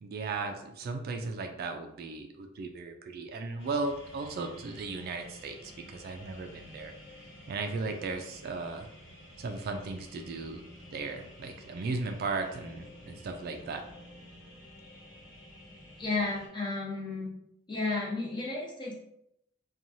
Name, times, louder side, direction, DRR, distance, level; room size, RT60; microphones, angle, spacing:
voice 1, 0.0-5.6 5.9-6.9 7.5-8.9 9.4-10.6 10.9-13.8, right 3 dB, 50° right, 5 dB, 0.3 m, -36 dB
sound 1, 3.6-16.5, equal, 80° left, 1.2 m, -51 dB
voice 2, 16.0-17.3 17.7-18.9, left 3 dB, 25° left, -3 dB, 0.7 m, -33 dB
2.9 x 2.3 x 2.6 m, 0.79 s
head